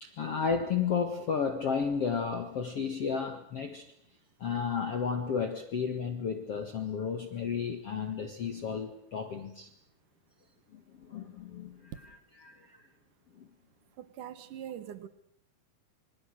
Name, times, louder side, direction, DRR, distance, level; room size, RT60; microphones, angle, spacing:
voice 1, 0.0-3.9 4.4-9.7 10.7-11.9 12.4-12.8 13.4-13.5, left 6 dB, 80° left, 6 dB, 1.3 m, -33 dB
voice 2, 14.0-15.1, right 10 dB, 70° right, 12 dB, 2.0 m, -42 dB
27.5 x 26.0 x 6.5 m, 0.70 s
omnidirectional pair, 5.6 m